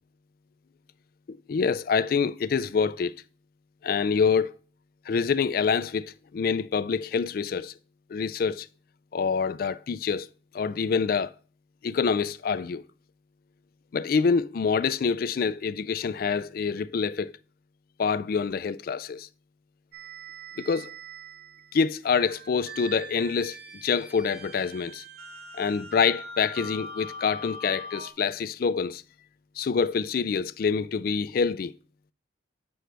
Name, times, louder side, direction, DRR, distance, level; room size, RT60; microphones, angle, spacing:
voice 1, 1.3-3.1 3.8-4.5 5.1-7.7 8.1-8.7 9.1-10.3 10.5-11.3 11.8-12.8 13.9-17.3 18.0-19.3 20.6-20.9 21.7-25.0 25.5-29.0 29.6-31.7, left 5 dB, 50° left, 0.3 m, -26 dB
sound 1, 19.9-28.1, right 1 dB, 55° right, 0.7 m, -42 dB
7.7 x 6.3 x 3.3 m
head